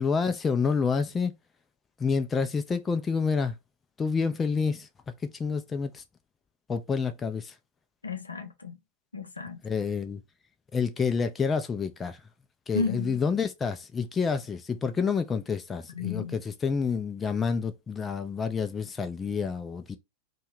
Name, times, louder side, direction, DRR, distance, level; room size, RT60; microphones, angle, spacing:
voice 1, 0.0-1.3 2.0-3.6 4.0-4.9 5.2-6.0 6.7-7.5 9.6-10.2 10.7-12.2 12.7-20.0, left 5 dB, 20° left, 0.4 m, -28 dB
voice 2, 8.0-8.8 9.1-9.6 12.7-13.2 15.9-16.4, left 4 dB, 80° left, 0.5 m, -32 dB
2.7 x 2.2 x 3.0 m
figure-of-eight pair, 90°, 0 cm